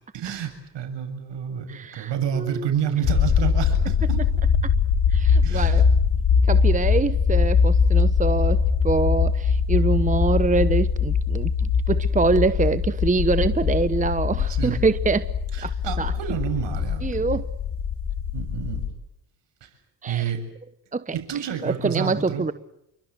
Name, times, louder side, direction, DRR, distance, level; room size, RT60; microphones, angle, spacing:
voice 1, 0.1-4.3 5.4-5.8 14.5-14.8 15.5-17.4 18.3-18.8 19.6-19.7 20.1-20.4 21.1-22.4, right 8 dB, 60° right, 7.6 m, -29 dB
voice 2, 1.7-2.7 5.1-5.9 6.5-15.3 15.6-15.7 16.0-16.1 17.0-17.4 20.0-20.2 20.9-21.2 21.6-22.5, right 3 dB, 15° right, 1.0 m, -24 dB
sound 1, 3.0-18.9, left 6 dB, 65° left, 7.0 m, -22 dB
29.0 x 24.5 x 8.0 m
supercardioid pair, 60°, 47 cm